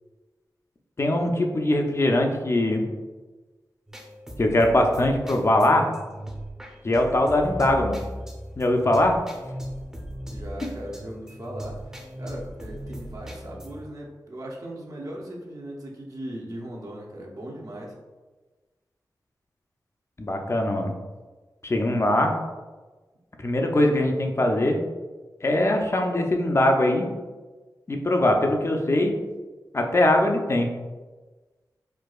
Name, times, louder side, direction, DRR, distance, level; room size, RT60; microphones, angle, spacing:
voice 1, 1.0-2.9 4.4-5.9 6.8-8.1 8.6-9.2 20.2-21.0 21.6-22.3 23.4-24.8 25.4-27.1 27.9-29.1 29.7-30.7, left 1 dB, 35° left, 3 dB, 0.5 m, -21 dB
sound 1, 3.9-13.9, equal, 10° right, 0.7 m, -38 dB
voice 2, 10.3-11.9 12.2-18.0, right 1 dB, 50° right, -2 dB, 0.7 m, -38 dB
4.5 x 2.3 x 2.3 m, 1.3 s
cardioid pair, 45°, 7 cm